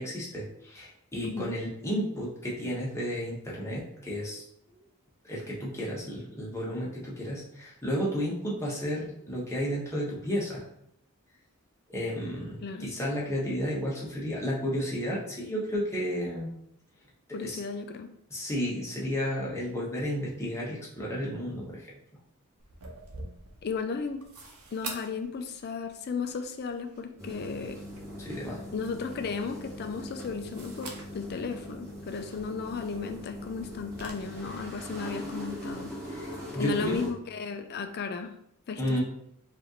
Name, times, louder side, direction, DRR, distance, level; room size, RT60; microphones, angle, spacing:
voice 1, 0.0-4.4 5.2-10.6 11.9-16.5 17.3-17.6 18.3-21.8 28.2-28.6 36.1-37.0 38.8-39.0, equal, 15° left, -5 dB, 1.0 m, -32 dB
voice 2, 1.2-1.5 12.6-12.9 17.3-18.1 23.6-24.2 24.7-27.8 28.7-38.3 38.7-39.0, left 5 dB, 45° left, 7 dB, 0.4 m, -35 dB
sound 1, 22.6-34.1, right 3 dB, 80° right, 0.8 m, -48 dB
sound 2, 27.2-37.1, equal, 15° right, 1.6 m, -41 dB
4.9 x 2.6 x 3.0 m, 0.73 s
head